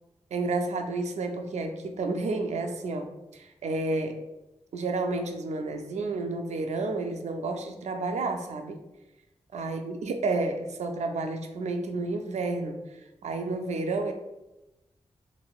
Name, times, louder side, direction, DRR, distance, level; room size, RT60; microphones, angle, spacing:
voice 1, 0.3-4.2 4.7-8.8 9.5-12.8 13.2-14.1, right 3 dB, 75° right, 5 dB, 0.4 m, -30 dB
3.1 x 2.6 x 2.4 m, 0.96 s
cardioid pair, 40°, 12 cm